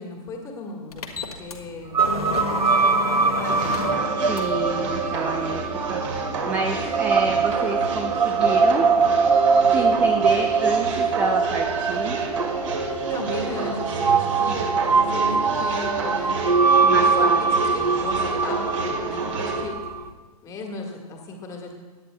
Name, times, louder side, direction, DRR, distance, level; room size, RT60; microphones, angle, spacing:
voice 1, 0.0-2.0 2.5-4.1 13.1-16.5 16.9-17.3 17.7-19.7 20.4-21.7, left 3 dB, 15° left, 2 dB, 1.6 m, -36 dB
sound 1, 0.9-20.1, left 3 dB, 65° left, 1.5 m, -37 dB
sound 2, 1.9-20.1, right 5 dB, 80° right, 0.5 m, -22 dB
sound 3, 3.4-19.6, right 4 dB, 50° right, 2.1 m, -29 dB
voice 2, 4.2-5.6 5.9-8.9 9.7-12.2 16.8-17.4, right 3 dB, 10° right, 4 dB, 0.4 m, -29 dB
21.5 x 10.0 x 2.2 m, 1.3 s
figure-of-eight pair, 120°, 20 cm